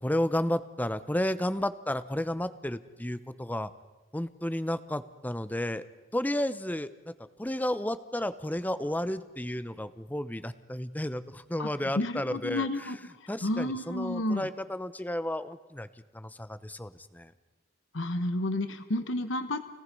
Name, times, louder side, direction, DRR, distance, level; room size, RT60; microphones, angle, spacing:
voice 1, 0.0-3.7 4.1-5.8 6.1-7.1 7.4-12.9 13.3-15.9 16.1-17.3, left 1 dB, 10° left, 13 dB, 0.7 m, -32 dB
voice 2, 12.0-14.5 17.9-19.6, left 1 dB, 65° left, 8 dB, 1.2 m, -31 dB
29.0 x 18.5 x 5.4 m, 1.1 s
head